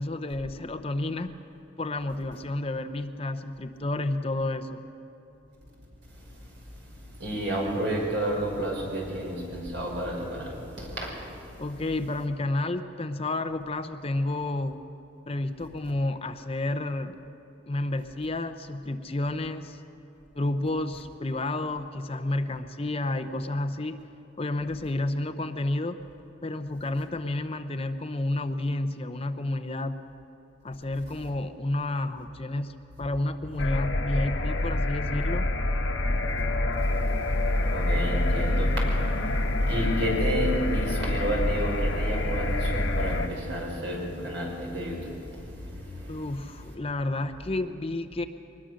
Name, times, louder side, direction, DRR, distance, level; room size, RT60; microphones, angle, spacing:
voice 1, 0.0-1.3 1.8-4.8 11.6-14.8 15.3-17.2 17.7-19.8 20.3-24.0 24.4-26.0 26.4-30.0 30.6-35.5 46.1-48.2, left 2 dB, 30° left, 9 dB, 0.6 m, -30 dB
voice 2, 7.2-11.1 37.7-38.7 39.7-45.0 45.8-45.9, right 1 dB, 65° right, -1 dB, 5.6 m, -30 dB
sound 1, 33.6-43.3, left 1 dB, 85° left, 1.1 m, -26 dB
22.5 x 20.5 x 6.4 m, 3.0 s
head